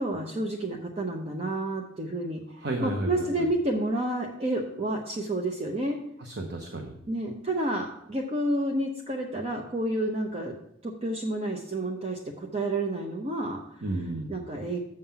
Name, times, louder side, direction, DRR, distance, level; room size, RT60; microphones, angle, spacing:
voice 1, 0.0-2.4 2.8-6.0 7.1-10.6 10.8-13.8 14.3-14.8, right 1 dB, 30° right, 2 dB, 0.7 m, -30 dB
voice 2, 2.6-3.5 6.2-6.9 13.8-14.3, right 2 dB, 55° right, 3 dB, 0.9 m, -32 dB
7.8 x 5.6 x 5.7 m, 0.77 s
head